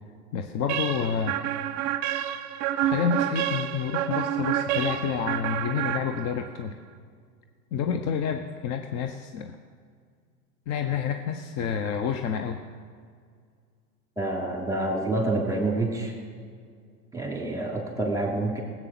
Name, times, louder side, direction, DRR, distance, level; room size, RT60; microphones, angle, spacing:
voice 1, 0.3-1.4 2.8-6.8 7.7-9.6 10.7-12.6, left 7 dB, 35° left, 7 dB, 0.9 m, -29 dB
sound 1, 0.7-6.6, right 11 dB, 35° right, 0.9 m, -29 dB
voice 2, 14.2-16.1 17.1-18.6, right 2 dB, 5° right, 0 dB, 3.0 m, -27 dB
18.5 x 8.4 x 6.0 m, 2.1 s
figure-of-eight pair, 90°, 48 cm